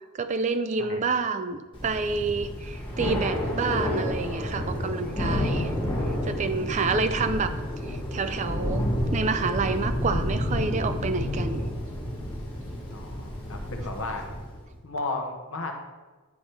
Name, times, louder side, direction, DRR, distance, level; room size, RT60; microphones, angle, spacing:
voice 1, 0.2-5.7 6.2-7.5 7.9-8.9 9.1-11.6, right 4 dB, 35° right, 9 dB, 0.3 m, -28 dB
Thunder / Rain, 1.7-14.6, left 1 dB, 20° left, 1.5 m, -30 dB
voice 2, 12.9-14.3 14.8-15.7, left 3 dB, 60° left, 4 dB, 0.9 m, -34 dB
9.6 x 3.3 x 4.4 m, 1.3 s
head